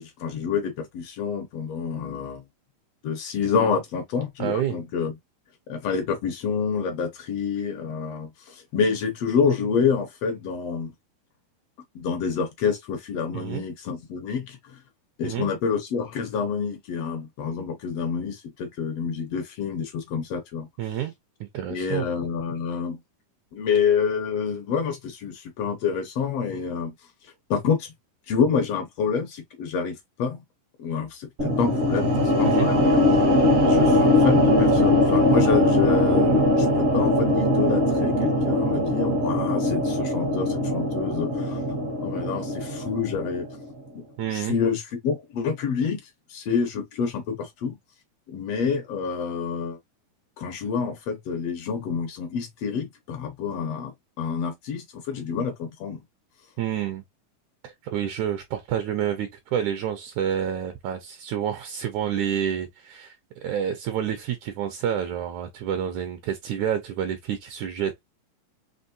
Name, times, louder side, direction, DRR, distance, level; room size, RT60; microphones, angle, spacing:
voice 1, 0.0-2.4 3.0-5.1 5.7-10.9 11.9-14.8 15.2-20.7 21.7-23.0 23.5-26.9 27.5-27.9 28.3-30.4 30.8-33.0 33.6-41.6 42.0-43.5 43.9-46.0 46.3-47.8 48.3-49.8 50.4-56.0, left 6 dB, 70° left, 1.5 m, -28 dB
voice 2, 4.4-4.8 13.3-13.7 15.2-15.5 20.8-21.1 21.4-22.1 32.4-32.7 44.2-44.6 56.6-57.0 57.6-68.0, right 9 dB, 75° right, 1.8 m, -29 dB
sound 1, 31.4-43.6, left 1 dB, 60° right, 0.8 m, -21 dB
5.3 x 3.0 x 2.6 m
omnidirectional pair, 3.9 m